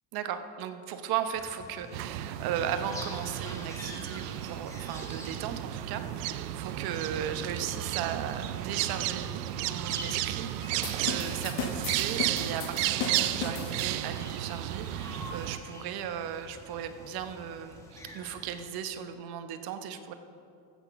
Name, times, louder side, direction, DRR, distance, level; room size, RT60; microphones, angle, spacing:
voice 1, 0.1-9.3 9.6-20.1, right 9 dB, 50° right, 9 dB, 1.0 m, -36 dB
sound 1, 1.3-18.6, left 1 dB, 5° left, 1.6 m, -48 dB
sound 2, 1.9-15.6, right 14 dB, 85° right, 0.6 m, -33 dB
sound 3, 10.8-14.3, left 6 dB, 55° left, 1.2 m, -37 dB
15.5 x 6.1 x 5.7 m, 2.5 s
supercardioid pair, 125°, 47 cm